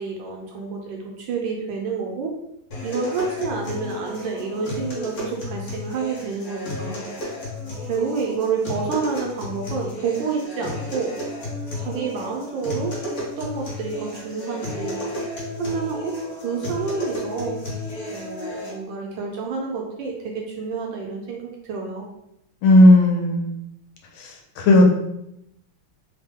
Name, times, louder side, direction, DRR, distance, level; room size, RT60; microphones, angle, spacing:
voice 1, 0.0-2.3 2.8-7.1 7.9-11.1 11.7-13.0 13.4-15.0 15.6-16.2 16.4-17.6 18.1-22.1, right 5 dB, 75° right, 0 dB, 1.2 m, -29 dB
sound 1, 2.7-18.7, left 2 dB, 55° left, 1.2 m, -32 dB
voice 2, 22.6-23.6 24.2-24.8, left 1 dB, 80° left, 0 dB, 1.4 m, -14 dB
3.5 x 2.1 x 3.5 m, 0.81 s
omnidirectional pair, 2.3 m